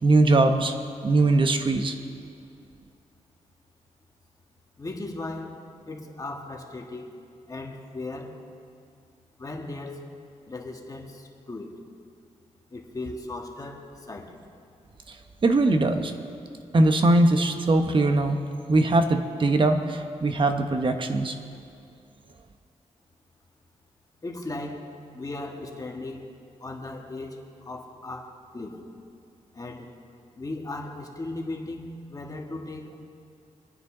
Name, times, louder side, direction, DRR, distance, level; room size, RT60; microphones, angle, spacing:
voice 1, 0.0-0.7 1.0-2.0 15.1-15.2 15.4-16.1 16.7-18.4 18.7-21.3, right 2 dB, 40° right, 6 dB, 1.1 m, -21 dB
voice 2, 4.8-5.6 5.9-7.1 7.5-8.4 9.4-10.0 10.5-11.7 12.7-14.4 24.2-26.2 26.6-29.0 29.5-29.9 30.4-33.0, left 2 dB, 30° left, 1 dB, 1.7 m, -37 dB
25.0 x 9.5 x 3.9 m, 2.4 s
cardioid pair, 95°, 13 cm